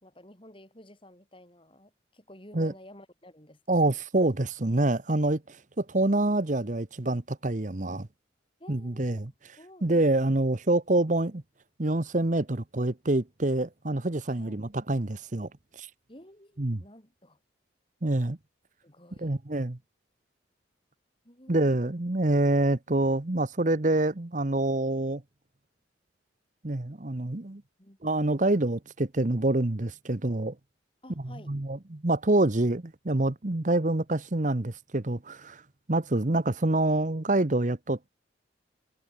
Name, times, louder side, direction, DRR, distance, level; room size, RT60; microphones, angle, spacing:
voice 1, 0.0-3.9 8.6-10.0 14.2-14.7 16.1-17.4 18.8-19.4 21.2-21.9 27.8-28.2 31.0-31.5, left 1 dB, 25° left, 5.3 m, -52 dB
voice 2, 3.7-8.1 8.7-9.3 9.8-11.4 11.8-15.5 15.8-15.9 16.6-16.8 18.0-18.4 19.2-19.8 21.5-25.2 26.6-27.6 28.0-30.5 31.2-35.6 35.9-38.1, right 2 dB, 40° right, 1.0 m, -26 dB
head